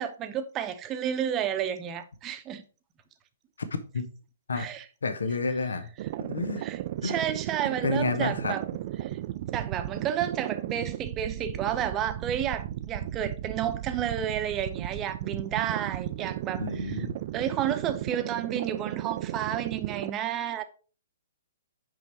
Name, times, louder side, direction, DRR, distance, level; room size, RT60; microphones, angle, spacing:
voice 1, 0.0-2.6 4.5-4.8 6.6-8.6 9.0-9.1 9.5-17.1 17.3-20.6, right 9 dB, 25° right, 0.8 m, -31 dB
voice 2, 5.0-5.9 6.2-6.6 7.0-7.2 7.6-8.6 16.6-17.2, left 4 dB, 70° left, 0.9 m, -30 dB
sound 1, 6.0-20.1, right 13 dB, 45° right, 0.4 m, -35 dB
6.1 x 5.5 x 4.4 m
figure-of-eight pair, 125°, 0 cm